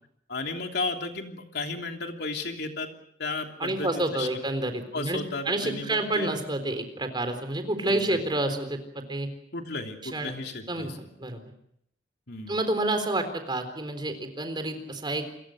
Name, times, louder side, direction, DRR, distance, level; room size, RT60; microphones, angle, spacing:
voice 1, 0.3-2.9 3.2-4.3 4.9-6.3 7.8-8.2 9.5-11.1 12.3-12.5, left 3 dB, 65° left, 4 dB, 3.2 m, -34 dB
voice 2, 3.6-5.2 5.5-9.3 10.0-10.3 10.7-10.9 11.2-11.4 12.5-15.3, right 2 dB, 25° right, 7 dB, 3.9 m, -29 dB
28.5 x 22.5 x 6.5 m, 0.71 s
head